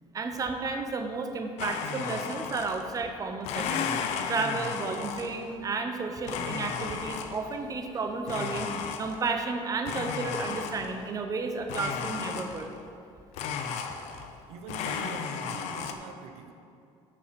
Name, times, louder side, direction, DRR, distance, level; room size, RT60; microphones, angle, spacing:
voice 1, 0.1-3.9 4.3-8.7 9.0-12.7, right 4 dB, 30° right, 5 dB, 0.9 m, -32 dB
Domestic sounds home sounds, 1.6-3.0 3.4-5.5 6.2-7.6 8.3-9.4 9.9-11.1 11.7-12.8 13.3-14.4 14.7-15.9, left 6 dB, 75° left, 0.7 m, -34 dB
voice 2, 14.5-16.5, right 6 dB, 75° right, 6 dB, 0.7 m, -43 dB
6.8 x 5.6 x 6.8 m, 2.5 s
cardioid pair, 110°, 11 cm